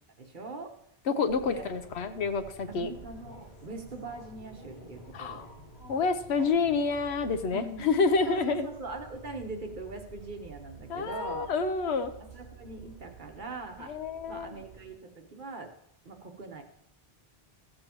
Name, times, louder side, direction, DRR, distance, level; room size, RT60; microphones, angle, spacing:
voice 1, 0.2-0.8 1.4-1.6 2.7-5.4 7.5-7.9 8.3-11.5 12.2-13.9 14.3-15.7 16.0-16.6, right 3 dB, 50° right, 3 dB, 1.2 m, -41 dB
voice 2, 1.1-2.9 5.1-5.5 5.9-8.7 10.9-12.1 13.9-14.5, left 4 dB, 80° left, 9 dB, 1.0 m, -28 dB
sound 1, 1.3-14.8, right 2 dB, 35° left, 5.1 m, -50 dB
15.0 x 7.6 x 3.0 m, 0.74 s
omnidirectional pair, 1.1 m